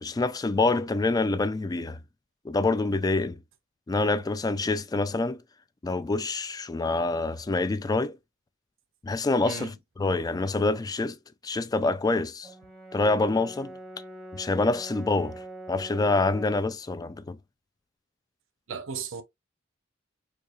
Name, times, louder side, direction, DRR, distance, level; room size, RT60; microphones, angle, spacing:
voice 1, 0.0-2.0 2.4-3.4 3.9-5.4 5.8-8.1 9.0-9.7 10.0-11.2 11.4-12.5 12.9-13.7 14.3-15.3 15.7-17.4, left 3 dB, 20° left, 0.3 m, -26 dB
voice 2, 9.4-9.8 18.7-19.2, right 6 dB, 70° right, 0.7 m, -36 dB
Brass instrument, 12.4-16.7, right 2 dB, 5° left, 0.8 m, -43 dB
4.5 x 2.7 x 2.4 m
head